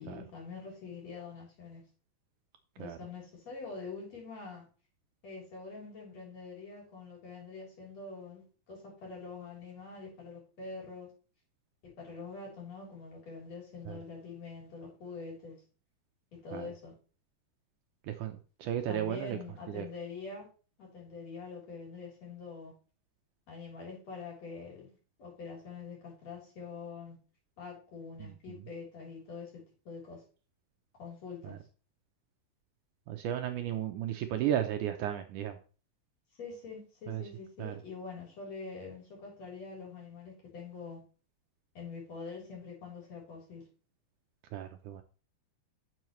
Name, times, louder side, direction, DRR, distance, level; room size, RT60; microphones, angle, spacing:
voice 1, 0.0-1.8 2.8-4.7 5.2-11.1 11.8-15.5 16.4-16.9 18.9-20.5 20.8-22.7 23.5-24.9 25.2-27.2 27.6-29.5 29.8-30.2 31.0-31.5 36.4-41.0 41.7-43.6, left 4 dB, 50° left, 4.7 m, -45 dB
voice 2, 18.0-19.4 19.7-19.9 28.2-28.6 31.4-31.6 33.1-35.6 37.1-37.2 37.6-37.8 44.5-45.0, right 11 dB, 75° right, 2.0 m, -34 dB
10.5 x 7.2 x 3.1 m
omnidirectional pair, 4.0 m